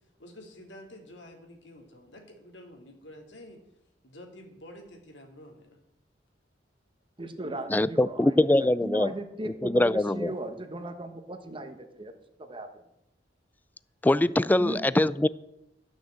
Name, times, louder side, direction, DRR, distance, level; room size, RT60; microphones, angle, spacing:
voice 1, 0.2-3.6 4.0-5.8, left 1 dB, 80° left, 2.6 m, -49 dB
voice 2, 7.2-12.1 12.4-12.7 14.6-14.8, right 1 dB, 30° right, 1.2 m, -37 dB
voice 3, 7.7-9.1 9.5-10.3 14.0-15.3, left 1 dB, 10° left, 0.3 m, -23 dB
13.0 x 6.4 x 7.4 m
head